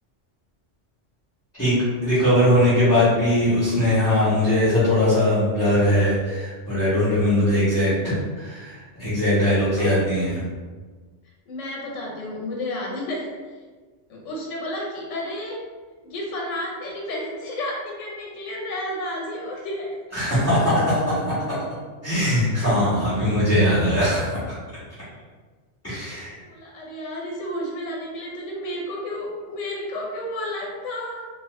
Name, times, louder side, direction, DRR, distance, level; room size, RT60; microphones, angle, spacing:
voice 1, 2.0-10.4 20.1-21.4 22.0-24.6 25.8-26.4, left 1 dB, 15° left, -12 dB, 1.0 m, -20 dB
voice 2, 11.5-13.3 14.1-15.6 16.0-20.0 26.1-31.3, left 1 dB, 85° left, -2 dB, 1.0 m, -31 dB
2.9 x 2.4 x 3.0 m, 1.4 s
omnidirectional pair, 1.2 m